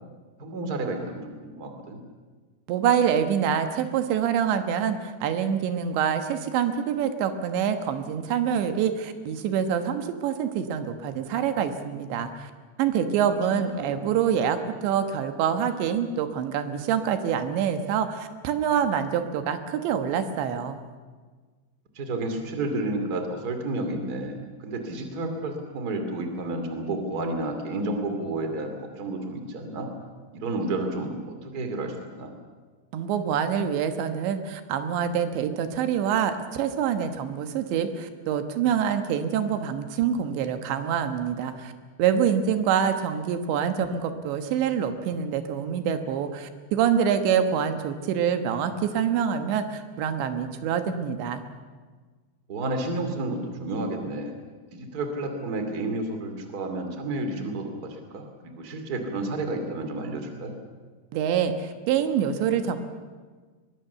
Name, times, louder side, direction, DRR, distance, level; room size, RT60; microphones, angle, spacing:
voice 1, 0.4-2.0 13.2-14.2 21.9-29.9 30.3-32.3 52.5-54.4 54.7-60.5, right 2 dB, 25° right, 6 dB, 2.4 m, -31 dB
voice 2, 2.7-12.5 12.8-20.8 32.9-41.7 42.0-51.4 61.1-62.8, right 8 dB, 85° right, 8 dB, 3.6 m, -26 dB
23.5 x 21.5 x 6.9 m, 1.4 s
omnidirectional pair, 5.0 m